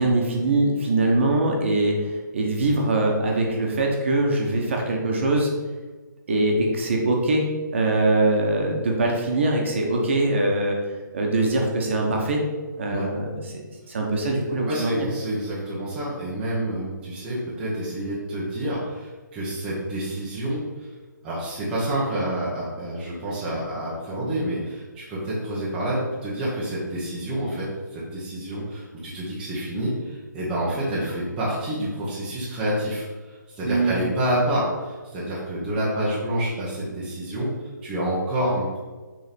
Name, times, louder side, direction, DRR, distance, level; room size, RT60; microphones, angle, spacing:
voice 1, 0.0-5.5 6.3-7.4 7.7-10.8 11.1-12.4 12.8-13.3 13.9-14.9 33.6-34.0, right 2 dB, 35° right, 0 dB, 1.3 m, -22 dB
voice 2, 14.7-20.9 21.2-38.8, right 1 dB, 10° right, -8 dB, 1.0 m, -28 dB
6.9 x 3.8 x 5.2 m, 1.3 s
hypercardioid pair, 170°, 11 cm